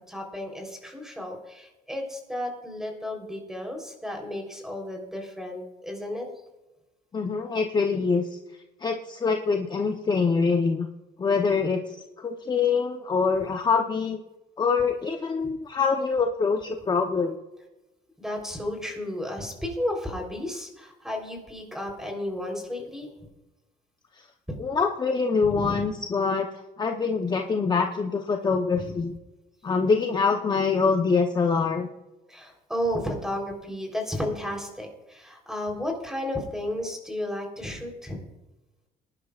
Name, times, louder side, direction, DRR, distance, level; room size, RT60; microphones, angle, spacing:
voice 1, 0.1-6.3 18.2-23.1 24.5-24.6 25.4-25.8 28.8-29.0 32.3-38.2, left 1 dB, 5° right, 1 dB, 3.7 m, -33 dB
voice 2, 7.1-8.4 8.8-10.9 11.2-14.2 14.6-17.4 24.2-24.3 24.6-29.1 29.6-31.9, left 5 dB, 25° left, 4 dB, 0.8 m, -25 dB
23.0 x 11.0 x 2.4 m, 1.0 s
cardioid pair, 110°, 17 cm